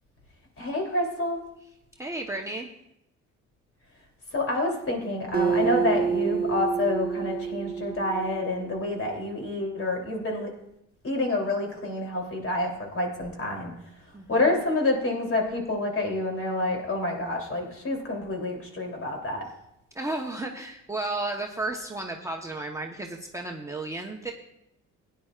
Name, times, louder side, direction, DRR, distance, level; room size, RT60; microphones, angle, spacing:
voice 1, 0.6-1.4 4.3-10.5 11.0-13.7 14.3-19.5, left 2 dB, 45° left, 1 dB, 3.2 m, -28 dB
voice 2, 2.0-2.7 14.1-14.4 19.9-24.3, right 2 dB, 10° right, 0 dB, 1.0 m, -33 dB
Acoustic guitar, 5.3-8.9, right 6 dB, 30° right, 1.5 m, -28 dB
16.5 x 10.5 x 2.4 m, 0.83 s
cardioid pair, 90°, 30 cm